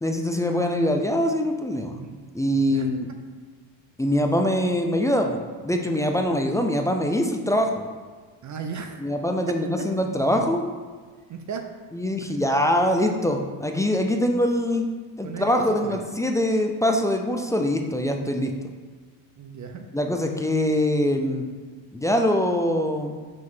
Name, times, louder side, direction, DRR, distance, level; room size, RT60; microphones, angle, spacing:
voice 1, 0.0-2.0 2.3-3.1 4.0-7.9 9.0-10.6 11.9-14.9 15.2-18.5 19.9-21.5 21.9-23.2, left 1 dB, 10° left, 3 dB, 0.3 m, -23 dB
voice 2, 8.4-9.0 11.3-11.6 15.2-16.0 19.4-19.8, right 6 dB, 40° right, 5 dB, 0.6 m, -35 dB
5.9 x 5.0 x 3.7 m, 1.5 s
cardioid pair, 105°, 46 cm